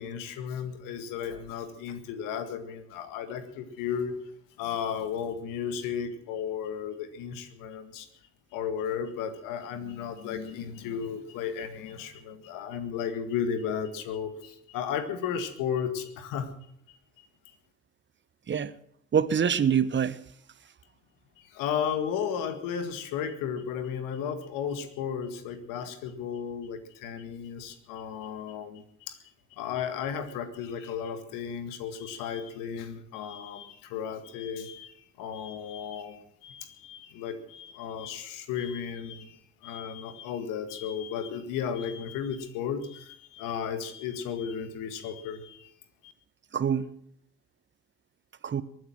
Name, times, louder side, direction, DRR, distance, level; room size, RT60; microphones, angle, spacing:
voice 1, 0.0-4.2 4.6-8.1 8.5-16.5 17.2-17.3 21.4-29.2 29.5-45.7 46.0-46.1, left 7 dB, 65° left, 1.9 m, -34 dB
voice 2, 19.1-20.2 46.5-46.9 48.4-48.6, right 7 dB, 35° right, 1.1 m, -25 dB
22.5 x 9.6 x 6.1 m
figure-of-eight pair, 50°, 35 cm